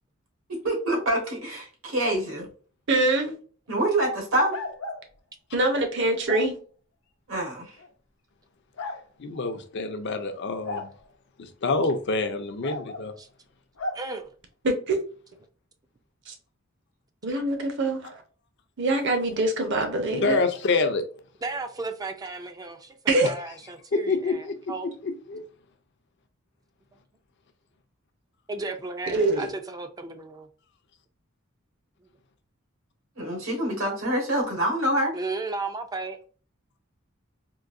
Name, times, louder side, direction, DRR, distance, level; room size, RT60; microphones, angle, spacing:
voice 1, 0.5-2.4 3.7-4.5 7.3-7.7 33.2-35.1, right 1 dB, 75° right, 1.5 m, -26 dB
voice 2, 2.9-3.3 5.5-6.6 14.6-15.0 16.3-16.4 17.2-18.2 18.8-20.4 23.1-23.3 29.1-29.5, right 2 dB, 60° right, 0.8 m, -24 dB
sound 1, 4.5-5.0 6.3-6.5 7.8-7.9 8.8-9.0 10.6-10.9 12.6-13.1 13.8-14.0, left 2 dB, 90° left, 0.7 m, -34 dB
voice 3, 9.2-10.9 11.4-13.1 20.1-21.0 23.9-24.5 25.0-25.4, left 3 dB, 55° left, 0.5 m, -27 dB
voice 4, 13.9-14.3 21.4-24.9 28.5-30.5 35.1-36.2, right 3 dB, 20° right, 0.4 m, -34 dB
3.8 x 2.6 x 2.5 m
head